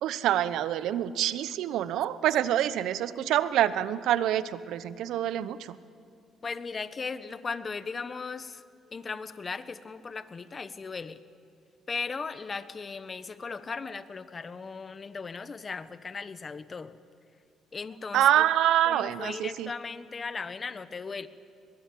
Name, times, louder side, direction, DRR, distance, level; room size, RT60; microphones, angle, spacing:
voice 1, 0.0-5.8 18.1-19.7, right 12 dB, 75° right, 15 dB, 0.9 m, -26 dB
voice 2, 6.4-8.6 8.9-11.2 11.9-17.0 17.7-18.5 18.9-21.3, left 4 dB, 35° left, 13 dB, 1.2 m, -37 dB
23.0 x 21.5 x 8.5 m, 2.5 s
supercardioid pair, 80°, 0 cm